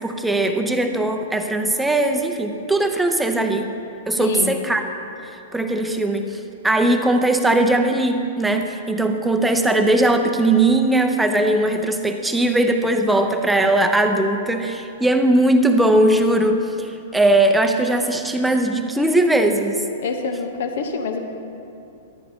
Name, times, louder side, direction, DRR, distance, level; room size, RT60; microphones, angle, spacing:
voice 1, 0.0-3.7 4.1-4.8 5.2-19.8, right 1 dB, 5° right, 5 dB, 0.8 m, -19 dB
voice 2, 4.2-4.6 20.0-21.2, left 5 dB, 60° left, 5 dB, 1.1 m, -26 dB
14.0 x 12.0 x 2.9 m, 2.7 s
figure-of-eight pair, 105°, 0 cm